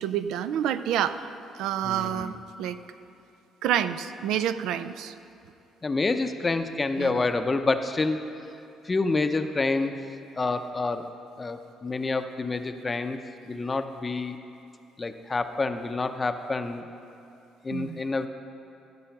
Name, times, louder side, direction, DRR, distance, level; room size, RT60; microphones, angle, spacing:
voice 1, 0.0-1.3 1.6-2.8 3.6-5.1 7.0-7.2 17.7-18.0, right 10 dB, 80° right, 12 dB, 0.4 m, -28 dB
voice 2, 1.8-2.4 5.8-8.2 8.8-9.9 10.4-11.1 11.4-13.2 13.5-14.4 15.0-16.8 17.6-18.3, left 3 dB, 25° left, 8 dB, 0.6 m, -28 dB
14.5 x 6.3 x 5.9 m, 2.7 s
cardioid pair, 85°, 0 cm